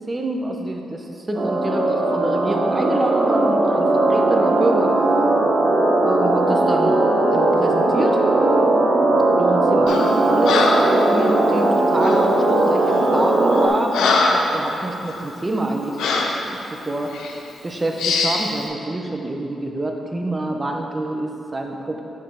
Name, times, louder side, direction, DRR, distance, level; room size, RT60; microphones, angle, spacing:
voice 1, 0.0-5.0 6.0-7.0 7.3-8.2 9.4-16.0 16.4-17.2 17.6-22.0, right 1 dB, 25° right, 2 dB, 0.8 m, -26 dB
sound 1, 1.3-13.7, right 2 dB, 65° right, 0.8 m, -18 dB
Breathing, 9.9-10.1 10.4-11.0 12.0-12.3 12.9-13.1 13.5-14.6 15.0-15.2 16.0-16.4 17.1-17.3 18.0-18.5, left 3 dB, 85° left, 0.6 m, -21 dB
7.0 x 3.6 x 6.3 m, 2.8 s
cardioid pair, 60°, 0 cm